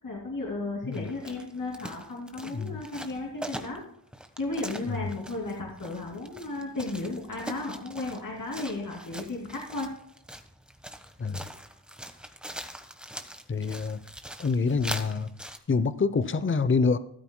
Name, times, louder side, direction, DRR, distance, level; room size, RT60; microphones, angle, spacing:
voice 1, 0.0-3.8 4.4-9.9, left 2 dB, 50° left, -2 dB, 2.7 m, -34 dB
sound 1, 0.9-15.6, equal, ahead, 1.2 m, -42 dB
voice 2, 13.5-14.0 14.4-15.3 15.7-17.0, left 4 dB, 30° left, 13 dB, 0.7 m, -26 dB
14.0 x 12.5 x 2.2 m, 0.70 s
wide cardioid pair, 80°, 42 cm